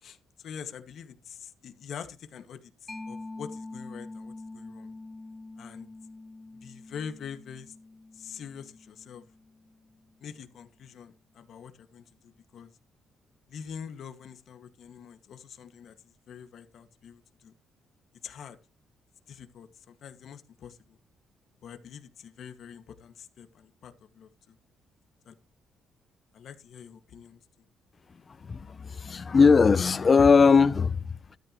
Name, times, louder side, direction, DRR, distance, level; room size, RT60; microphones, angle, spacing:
voice 1, 0.0-4.9 5.6-5.9 6.5-7.7 8.1-9.2 10.2-12.7 13.5-17.5 18.2-18.6 19.3-21.0 21.6-24.6 25.3-25.4 26.3-27.4, left 7 dB, 65° left, 2.0 m, -45 dB
Mallet percussion, 2.9-10.1, left 2 dB, 15° left, 2.3 m, -45 dB
voice 2, 28.4-31.4, left 5 dB, 35° left, 0.8 m, -20 dB
13.0 x 13.0 x 3.2 m
cardioid pair, 90°, 0 cm